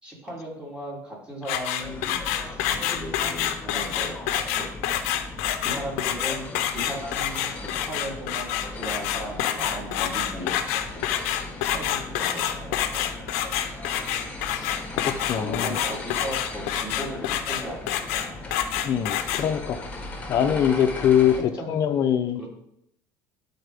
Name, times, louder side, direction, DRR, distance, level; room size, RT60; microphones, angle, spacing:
voice 1, 0.0-4.2 4.6-4.7 5.6-10.8 11.6-12.8 15.4-17.8 21.3-21.8 22.4-22.5, equal, 15° right, -4 dB, 3.4 m, -37 dB
sound 1, 1.4-19.4, left 11 dB, 90° left, 0.7 m, -27 dB
sound 2, 1.8-21.4, left 2 dB, 20° left, 1.3 m, -38 dB
voice 2, 15.0-15.8 18.8-19.8 20.3-21.4 21.7-22.5, left 9 dB, 50° left, 5 dB, 0.6 m, -23 dB
12.0 x 4.2 x 3.6 m, 0.73 s
supercardioid pair, 105°, 8 cm